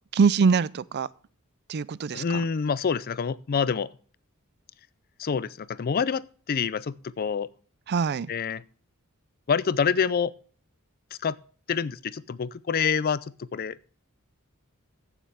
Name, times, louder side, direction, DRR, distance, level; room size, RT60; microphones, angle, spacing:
voice 1, 0.1-1.1 1.7-2.4 7.9-8.3, right 5 dB, 50° right, 0.4 m, -23 dB
voice 2, 2.1-3.9 5.2-7.5 8.3-8.6 9.5-10.3 11.2-11.4 11.7-13.8, left 6 dB, 45° left, 0.4 m, -27 dB
15.0 x 7.3 x 3.5 m
head